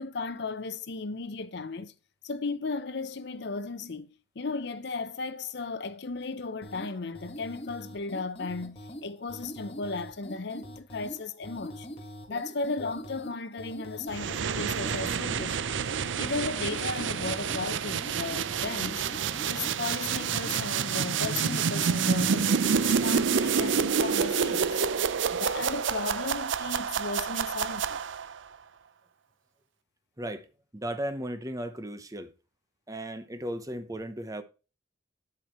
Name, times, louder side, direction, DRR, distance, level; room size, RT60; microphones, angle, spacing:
voice 1, 0.0-1.9 2.2-4.1 4.4-11.9 12.3-15.7 16.2-19.0 19.5-24.8 25.3-28.0, left 3 dB, 60° left, 0.7 m, -35 dB
sound 1, 6.6-22.8, equal, 30° left, 1.7 m, -44 dB
sound 2, 14.1-28.4, right 6 dB, 75° right, 0.5 m, -28 dB
voice 2, 30.7-32.3 32.9-34.4, right 1 dB, 20° right, 0.9 m, -35 dB
8.8 x 7.7 x 3.1 m
head